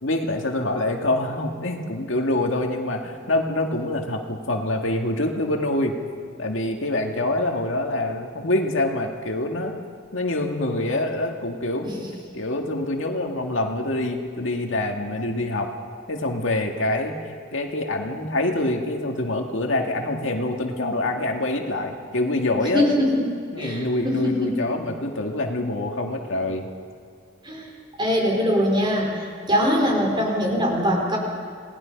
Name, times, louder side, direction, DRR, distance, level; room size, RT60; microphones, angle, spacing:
voice 1, 0.0-5.9 6.4-9.7 10.1-12.0 12.3-15.7 16.1-22.8 23.5-26.7, left 2 dB, 70° left, 2 dB, 2.1 m, -25 dB
voice 2, 22.7-24.6 27.4-27.7 28.0-31.2, equal, 25° right, -1 dB, 4.5 m, -22 dB
27.5 x 19.0 x 5.4 m, 2.4 s
head